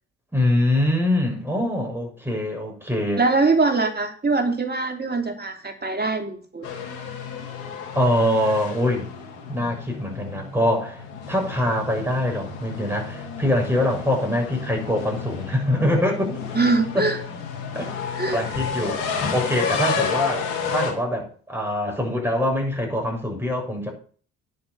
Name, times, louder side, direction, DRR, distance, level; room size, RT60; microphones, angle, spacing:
voice 1, 0.3-3.2 7.9-9.1 9.5-16.4 16.9-17.0 17.7-17.9 18.3-19.1 19.3-23.9, left 1 dB, 5° right, 2 dB, 7.2 m, -24 dB
voice 2, 3.2-6.7 16.5-17.2 18.2-18.4, right 3 dB, 25° right, 5 dB, 3.3 m, -22 dB
sound 1, 6.6-20.9, left 6 dB, 85° left, 2.4 m, -31 dB
10.5 x 8.0 x 7.2 m, 0.43 s
hypercardioid pair, 55°, 36 cm